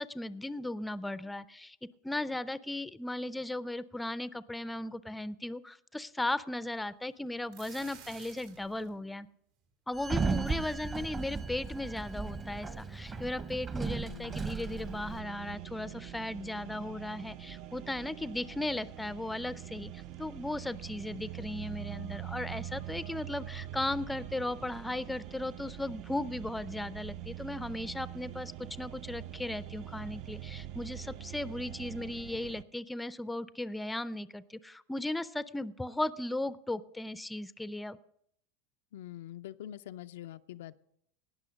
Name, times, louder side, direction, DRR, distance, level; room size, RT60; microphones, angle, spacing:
voice 1, 0.0-1.8 2.0-9.3 9.9-38.0, left 1 dB, 5° left, 16 dB, 0.5 m, -37 dB
sound 1, 7.3-8.9, right 7 dB, 80° right, 4.4 m, -52 dB
Sliding door, 10.0-15.2, right 4 dB, 25° right, 1.0 m, -36 dB
voice 2, 13.9-14.6 38.9-40.8, left 12 dB, 80° left, 10 dB, 0.4 m, -45 dB
sound 2, 14.3-32.6, right 12 dB, 55° right, 0.5 m, -44 dB
18.5 x 6.2 x 5.1 m, 0.70 s
hypercardioid pair, 105°, 0 cm